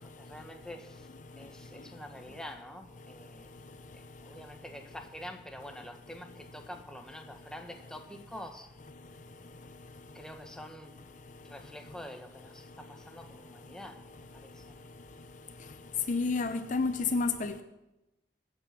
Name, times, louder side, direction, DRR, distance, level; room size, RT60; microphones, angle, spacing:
voice 1, 0.0-1.1 1.4-3.5 3.9-8.7 10.1-10.9 11.4-14.7, left 1 dB, 5° left, 4 dB, 1.4 m, -47 dB
voice 2, 16.1-17.6, left 4 dB, 45° left, 9 dB, 0.7 m, -29 dB
23.0 x 8.6 x 6.0 m, 0.97 s
head